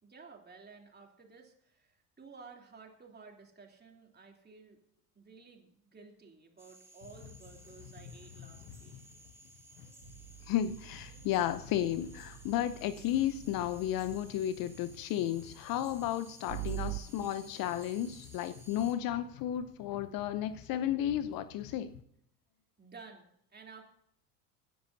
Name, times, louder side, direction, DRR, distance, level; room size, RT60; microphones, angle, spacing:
voice 1, 0.0-4.8 5.1-9.0 22.8-23.8, right 4 dB, 20° right, 1 dB, 3.3 m, -54 dB
sound 1, 6.6-18.9, right 2 dB, 5° right, 3.5 m, -57 dB
sound 2, 7.0-22.0, left 8 dB, 65° left, 1.1 m, -54 dB
sound 3, 10.0-14.4 16.5-17.0, right 25 dB, 65° right, 0.9 m, -44 dB
voice 2, 10.5-21.9, left 11 dB, 50° left, 13 dB, 0.8 m, -33 dB
25.5 x 10.0 x 2.8 m, 0.75 s
hypercardioid pair, 75°, 47 cm